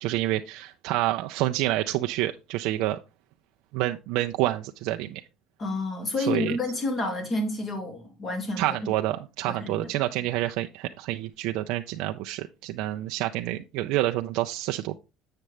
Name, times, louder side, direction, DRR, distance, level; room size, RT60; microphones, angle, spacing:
voice 1, 0.0-3.0 3.7-5.2 6.2-6.6 8.6-15.0, right 15 dB, 75° right, 0.4 m, -28 dB
voice 2, 5.6-8.7 9.5-9.9, left 2 dB, 30° left, 2.1 m, -29 dB
7.3 x 6.7 x 3.2 m
cardioid pair, 130°, 0 cm